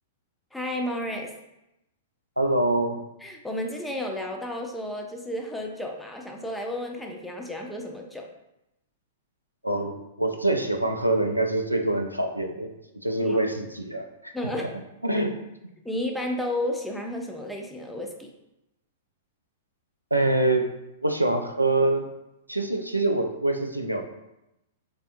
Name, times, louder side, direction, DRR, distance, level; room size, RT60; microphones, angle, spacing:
voice 1, 0.5-1.3 3.2-8.3 13.2-13.4 14.3-14.7 15.8-18.3, left 1 dB, 5° left, 2 dB, 0.5 m, -32 dB
voice 2, 2.4-3.0 9.6-12.7 13.0-14.3 14.6-14.7 15.0-15.4 20.1-20.7 21.0-22.1 22.5-24.0, right 2 dB, 90° right, 5 dB, 0.3 m, -25 dB
3.4 x 3.3 x 2.6 m, 0.89 s
figure-of-eight pair, 105°, 0 cm